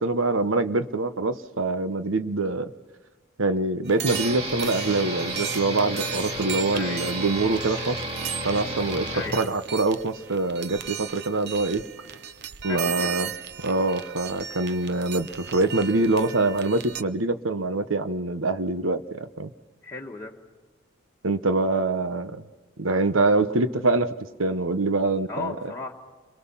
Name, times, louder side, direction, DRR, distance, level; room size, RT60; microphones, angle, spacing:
voice 1, 0.0-2.7 3.4-8.0 8.4-11.8 12.6-13.3 13.6-19.5 21.2-22.4 22.8-24.1 24.4-25.5, right 2 dB, 90° right, 11 dB, 1.1 m, -24 dB
sound 1, 3.8-17.0, right 9 dB, 55° right, 0.8 m, -36 dB
sound 2, 4.1-9.3, equal, 30° right, 2.8 m, -32 dB
voice 2, 6.7-7.0 9.1-9.5 12.7-13.1 19.8-20.3 25.3-25.9, left 3 dB, 15° left, -3 dB, 2.0 m, -35 dB
29.5 x 23.0 x 5.7 m, 1.3 s
head